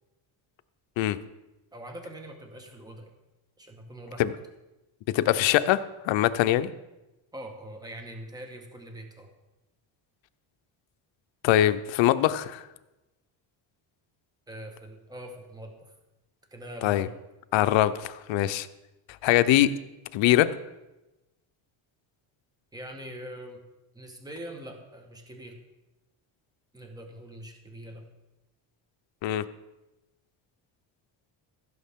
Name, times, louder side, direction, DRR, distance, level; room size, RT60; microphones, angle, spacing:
voice 1, 1.7-3.1 3.6-4.3 7.3-9.3 14.5-15.9 16.5-17.2 22.7-23.6 23.9-25.6 26.7-28.0, right 1 dB, 10° right, 3 dB, 1.3 m, -43 dB
voice 2, 5.1-6.7 11.4-12.7 16.8-17.1 17.5-18.7 19.2-19.7 20.1-20.5 29.2-29.4, left 13 dB, 70° left, 12 dB, 0.7 m, -22 dB
16.0 x 6.6 x 3.6 m, 1.0 s
cardioid pair, 140°, 47 cm